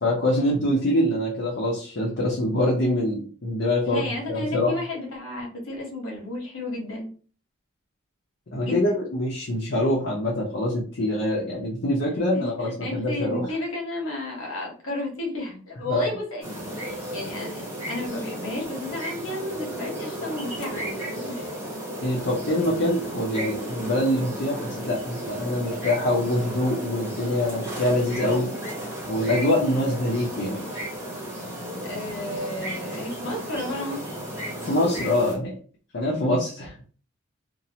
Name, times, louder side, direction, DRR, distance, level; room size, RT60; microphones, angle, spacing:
voice 1, 0.0-4.0 4.3-4.7 8.5-13.5 15.9-16.1 22.0-28.5 29.1-30.6 34.7-35.5 35.9-36.9, left 1 dB, 60° left, -4 dB, 0.6 m, -24 dB
voice 2, 3.8-7.1 8.6-9.0 12.4-16.6 16.8-17.6 17.9-21.5 31.8-34.1, left 2 dB, 85° left, -1 dB, 1.0 m, -32 dB
sound 1, 16.4-35.4, equal, 10° right, 0.9 m, -34 dB
2.6 x 2.0 x 2.7 m, 0.40 s
head